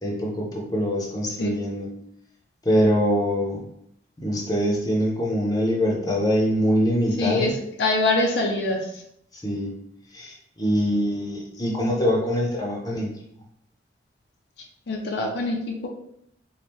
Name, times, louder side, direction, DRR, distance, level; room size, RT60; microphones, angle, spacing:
voice 1, 0.0-1.9 2.6-3.6 4.2-7.5 9.4-9.7 10.1-13.1, equal, 20° left, -2 dB, 0.7 m, -23 dB
voice 2, 7.2-9.0 14.9-15.9, left 2 dB, 65° left, 0 dB, 0.6 m, -24 dB
4.3 x 2.3 x 3.5 m, 0.73 s
head